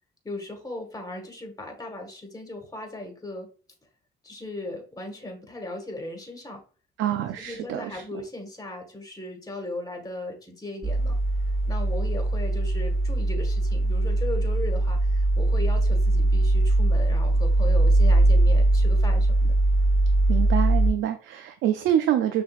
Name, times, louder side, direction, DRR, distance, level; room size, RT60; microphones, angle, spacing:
voice 1, 0.2-3.5 4.2-6.6 7.4-11.2 11.7-19.5, left 2 dB, 20° left, 3 dB, 1.4 m, -37 dB
voice 2, 7.0-8.0 20.3-22.4, right 10 dB, 85° right, 7 dB, 0.4 m, -26 dB
sound 1, 10.8-20.9, right 2 dB, ahead, 1.4 m, -21 dB
6.2 x 2.6 x 2.3 m, 0.36 s
cardioid pair, 90°, 20 cm